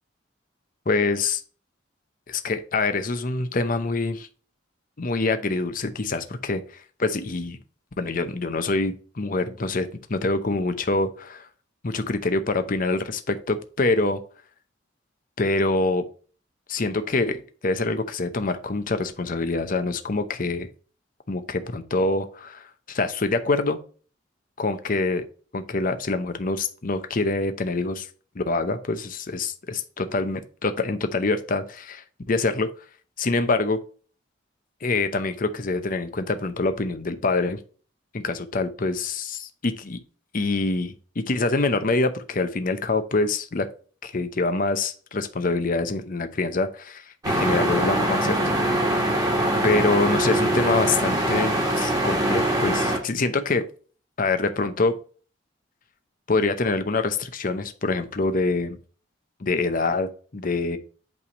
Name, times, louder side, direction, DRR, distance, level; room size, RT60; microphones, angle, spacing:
voice 1, 0.9-1.4 2.3-4.3 5.0-6.6 7.0-7.6 8.0-11.5 11.8-14.2 15.4-16.0 16.7-20.7 21.3-23.8 24.6-25.2 25.5-28.1 28.3-32.7 33.2-33.8 34.8-37.6 38.1-40.0 40.3-43.7 44.0-48.4 48.6-48.9 49.6-53.6 54.2-54.9 56.3-58.8 59.4-60.8, left 3 dB, 45° left, 9 dB, 0.7 m, -25 dB
sound 1, 47.2-53.0, right 1 dB, 20° right, 1.8 m, -23 dB
8.5 x 3.4 x 4.1 m, 0.39 s
head